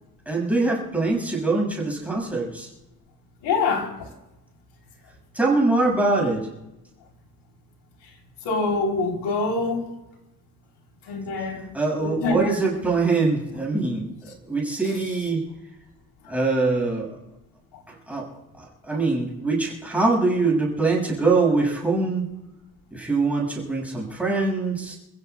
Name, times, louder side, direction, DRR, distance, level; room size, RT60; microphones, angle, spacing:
voice 1, 0.3-2.7 5.3-6.5 11.7-15.4 16.3-17.1 17.9-18.2 18.6-22.3 22.9-25.0, right 3 dB, 5° right, -3 dB, 6.5 m, -23 dB
voice 2, 3.4-4.1 8.4-9.9 11.0-11.7 12.0-12.6 18.9-19.0, left 3 dB, 80° left, 1 dB, 3.7 m, -25 dB
29.0 x 16.0 x 2.4 m, 0.95 s
cardioid pair, 170°, 40 cm